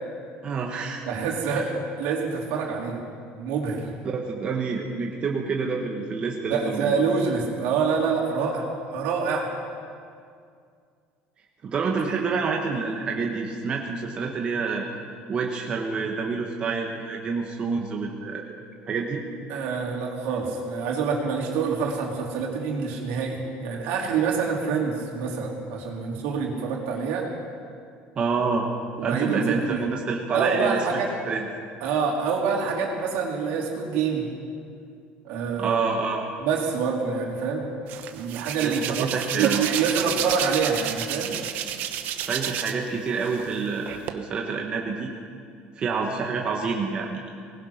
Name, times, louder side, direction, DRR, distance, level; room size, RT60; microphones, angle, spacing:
voice 1, 0.4-1.0 4.1-6.9 11.6-14.9 15.3-18.4 18.9-19.2 28.1-28.7 29.0-31.0 31.3-31.5 35.6-36.2 38.6-39.6 42.2-45.1 45.7-47.2, right 4 dB, 30° right, 0 dB, 1.6 m, -27 dB
voice 2, 1.1-3.0 3.4-3.9 6.5-9.5 19.5-27.3 29.0-29.8 30.3-31.1 31.8-34.2 35.2-35.8 36.4-37.7 38.1-39.1 39.4-41.3, right 5 dB, 75° right, -1 dB, 3.9 m, -26 dB
Hands, 37.9-42.9 43.2-44.1, right 10 dB, 55° right, 1.2 m, -30 dB
22.0 x 20.0 x 6.0 m, 2.3 s
cardioid pair, 165°, 4 cm